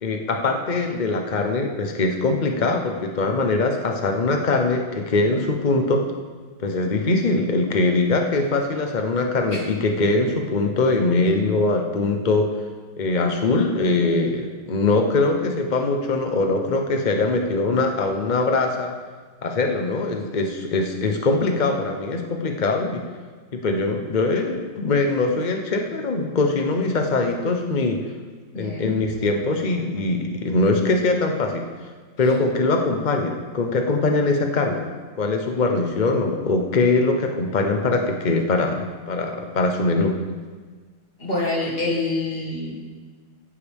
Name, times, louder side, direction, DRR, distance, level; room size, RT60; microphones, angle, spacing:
voice 1, 0.0-6.1 6.6-12.5 13.0-18.9 19.4-23.0 23.5-28.0 28.5-31.6 32.2-34.9 35.2-40.2, left 3 dB, 70° left, 3 dB, 0.4 m, -22 dB
voice 2, 28.5-28.9 41.2-42.7, left 2 dB, 25° left, -4 dB, 2.6 m, -26 dB
16.0 x 9.8 x 3.6 m, 1.5 s
omnidirectional pair, 2.3 m